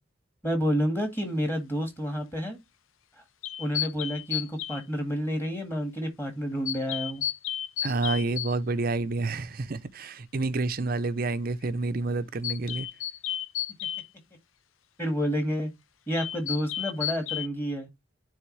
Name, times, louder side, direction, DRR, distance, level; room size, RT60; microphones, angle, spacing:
voice 1, 0.4-2.6 3.6-7.2 15.0-15.7 16.1-17.9, equal, 10° left, 1.8 m, -29 dB
sound 1, 3.4-4.8 6.6-8.5 12.4-14.1 16.1-17.5, left 11 dB, 80° left, 0.6 m, -32 dB
voice 2, 7.8-12.9, right 3 dB, 45° right, 0.6 m, -29 dB
9.6 x 3.4 x 3.2 m
head